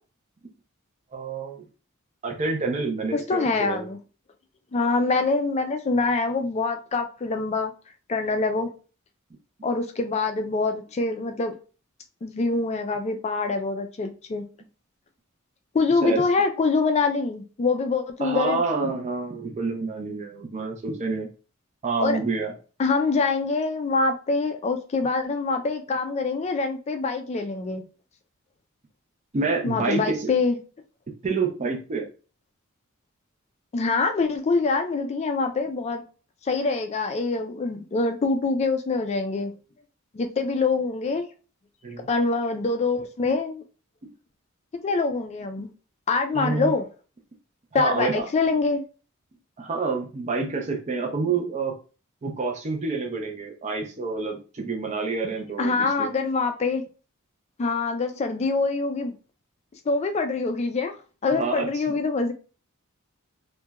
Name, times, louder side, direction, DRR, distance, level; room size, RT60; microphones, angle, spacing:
voice 1, 1.1-1.6 2.2-3.9 16.0-16.2 18.2-21.3 21.8-22.5 29.3-30.3 31.2-32.1 41.8-42.1 44.0-44.1 46.3-46.7 47.7-48.3 49.6-51.7 52.2-56.1 61.3-62.0, right 4 dB, 35° right, 0.5 m, -28 dB
voice 2, 3.1-4.0 4.7-7.7 8.1-8.7 9.6-11.5 12.2-14.5 15.7-18.6 22.0-22.2 22.8-27.8 29.6-30.6 33.7-36.0 36.4-39.5 40.1-41.2 42.1-43.6 44.8-45.7 46.1-46.8 47.7-48.8 55.6-56.8 57.6-59.1 59.9-60.9 61.2-62.3, left 3 dB, 30° left, 0.3 m, -25 dB
2.8 x 2.2 x 2.2 m
head